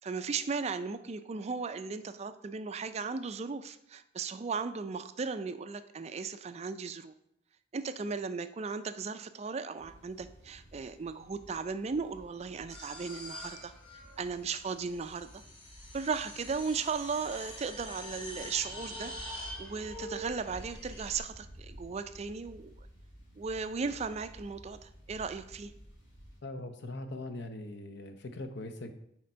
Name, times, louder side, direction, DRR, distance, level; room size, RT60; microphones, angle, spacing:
voice 1, 0.0-7.1 7.7-13.7 14.2-15.4 15.9-19.1 19.6-22.7 23.4-25.7, right 5 dB, 35° right, 11 dB, 0.4 m, -36 dB
sound 1, 9.8-26.4, equal, 75° left, 2.9 m, -53 dB
sound 2, 12.7-21.2, left 1 dB, 25° left, 1.8 m, -45 dB
voice 2, 26.4-28.9, left 2 dB, 60° left, 8 dB, 0.7 m, -41 dB
6.5 x 4.3 x 5.5 m, 0.76 s
head